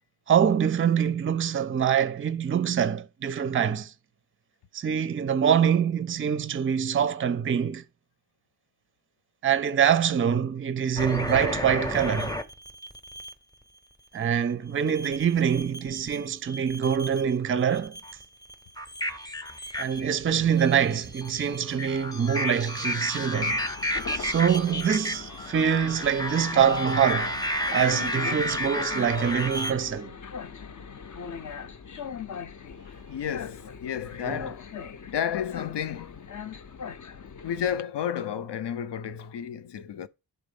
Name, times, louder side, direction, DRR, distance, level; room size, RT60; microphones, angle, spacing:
voice 1, 0.3-3.9 4.7-7.8 9.4-12.3 14.1-18.0 19.8-23.6 24.1-27.4 27.7-30.1 34.2-34.5, right 8 dB, 30° right, 0.4 m, -25 dB
sound 1, 11.0-13.3 14.9-16.2 16.5-17.3 17.7-29.7, left 1 dB, 10° left, 0.6 m, -32 dB
Train, 23.4-37.8, left 6 dB, 45° left, 0.6 m, -39 dB
voice 2, 32.9-34.7 35.1-36.3 37.4-40.1, left 9 dB, 85° left, 0.7 m, -32 dB
11.0 x 4.1 x 5.3 m
wide cardioid pair, 170°, 41 cm